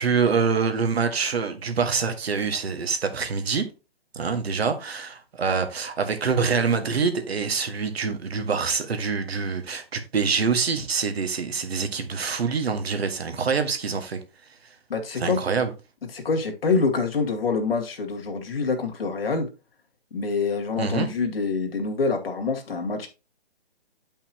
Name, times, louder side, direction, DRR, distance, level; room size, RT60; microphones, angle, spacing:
voice 1, 0.0-3.6 4.1-14.2 15.2-15.7 20.8-21.1, right 5 dB, 75° right, 1.8 m, -25 dB
voice 2, 14.9-15.4 16.1-19.5 20.1-23.1, left 4 dB, 65° left, 2.3 m, -26 dB
9.2 x 5.6 x 2.9 m
hypercardioid pair, 170°, 31 cm